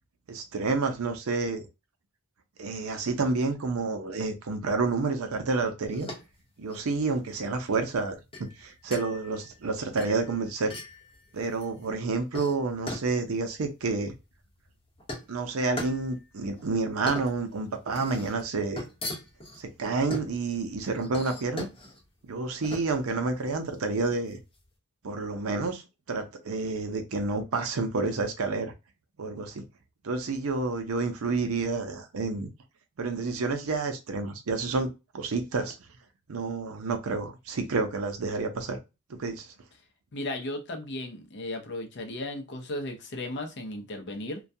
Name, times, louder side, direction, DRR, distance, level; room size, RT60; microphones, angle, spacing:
voice 1, 0.3-1.7 2.6-6.1 6.6-10.7 11.3-14.1 15.3-18.8 19.6-21.7 22.3-24.4 25.0-25.8 26.1-28.7 29.2-29.7 30.0-32.5 33.0-34.9 35.1-35.8 36.3-38.8 39.1-39.5, right 3 dB, 75° right, 0.5 m, -29 dB
sound 1, 5.9-24.7, left 1 dB, 25° left, 0.9 m, -41 dB
voice 2, 40.1-44.4, left 1 dB, 55° left, 0.6 m, -35 dB
2.3 x 2.2 x 2.6 m
head